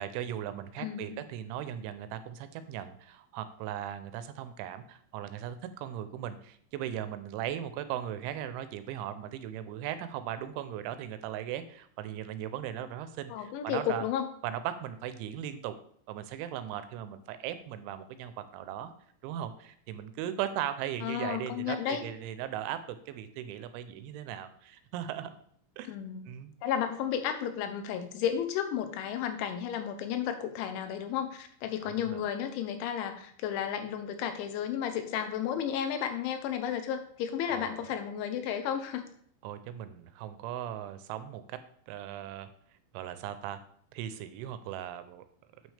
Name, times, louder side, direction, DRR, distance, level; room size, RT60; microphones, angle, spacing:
voice 1, 0.0-14.1 14.4-15.7 16.1-18.9 19.2-25.4 25.8-25.9 26.3-26.5 31.8-32.2 37.5-37.8 39.4-41.6 41.9-42.5 42.9-43.6 43.9-45.2, right 11 dB, 90° right, 11 dB, 3.1 m, -38 dB
voice 2, 0.8-1.2 13.3-14.3 21.0-22.0 25.9-26.3 26.6-39.0, left 9 dB, 90° left, 8 dB, 3.2 m, -33 dB
8.7 x 6.3 x 3.4 m, 0.64 s
omnidirectional pair, 5.3 m